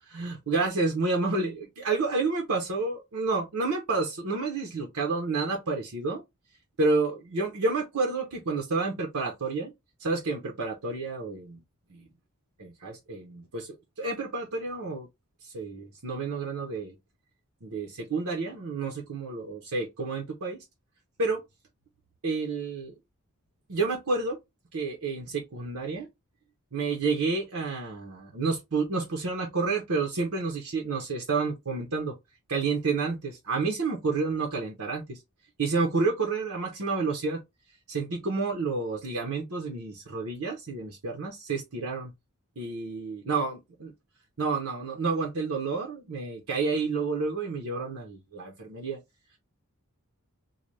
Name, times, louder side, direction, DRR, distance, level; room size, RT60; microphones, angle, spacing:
voice 1, 0.1-6.2 6.8-9.7 10.0-11.6 11.9-12.0 12.6-15.1 15.4-16.9 17.6-20.6 21.2-21.4 22.2-22.9 23.7-24.4 24.7-26.1 26.7-32.1 32.5-35.2 35.6-37.4 37.9-42.1 42.6-43.9 44.4-49.0, right 4 dB, 75° right, 0.8 m, -30 dB
4.0 x 2.2 x 3.1 m
head